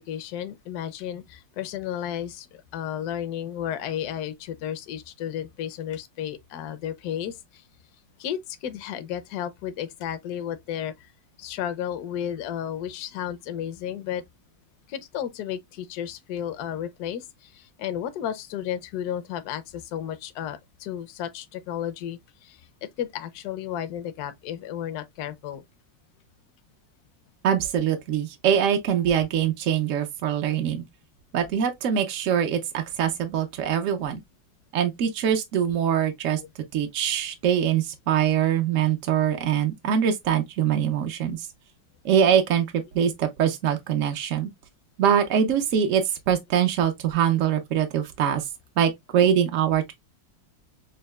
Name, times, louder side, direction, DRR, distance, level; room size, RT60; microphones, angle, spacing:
voice 1, 0.0-7.6 8.2-11.1 11.4-14.2 14.9-25.6 36.4-36.5, left 10 dB, 70° left, 1.0 m, -33 dB
voice 2, 27.4-30.8 31.3-34.2 34.7-36.4 36.7-41.5 42.0-44.5 45.0-48.4 48.8-49.9, right 9 dB, 70° right, 0.7 m, -23 dB
6.3 x 2.2 x 2.3 m
omnidirectional pair, 2.0 m